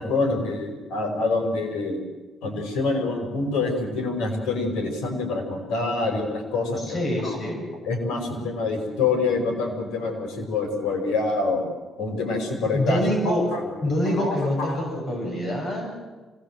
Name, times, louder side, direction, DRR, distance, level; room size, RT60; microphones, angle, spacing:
voice 1, 0.0-2.0 2.4-7.3 7.9-11.6 12.0-14.8, left 3 dB, 85° left, 4 dB, 5.3 m, -26 dB
voice 2, 6.8-7.6 12.7-13.5 13.8-16.0, left 1 dB, 50° left, 1 dB, 7.5 m, -26 dB
25.0 x 18.5 x 7.7 m, 1.3 s
cardioid pair, 90°, 0 cm